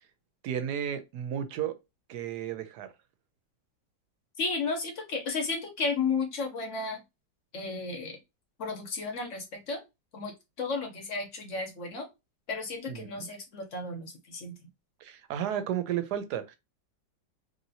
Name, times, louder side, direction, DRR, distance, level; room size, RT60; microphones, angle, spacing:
voice 1, 0.4-1.8 2.1-2.9 12.9-13.3 15.0-16.6, right 9 dB, 70° right, 1.1 m, -33 dB
voice 2, 4.4-7.0 7.5-8.2 8.6-9.8 10.1-10.3 10.6-12.0 12.5-14.5, left 4 dB, 50° left, 1.0 m, -33 dB
3.0 x 2.8 x 2.7 m
omnidirectional pair, 2.0 m